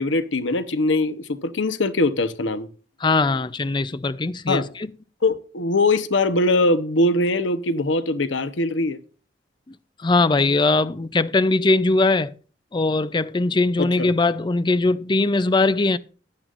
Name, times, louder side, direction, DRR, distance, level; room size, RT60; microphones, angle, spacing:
voice 1, 0.0-2.7 4.5-4.7 5.2-9.0 13.8-14.1, left 2 dB, 85° left, 1.0 m, -22 dB
voice 2, 3.0-4.9 10.0-12.3 12.7-16.0, left 3 dB, 25° left, 0.5 m, -20 dB
15.0 x 11.0 x 2.5 m
head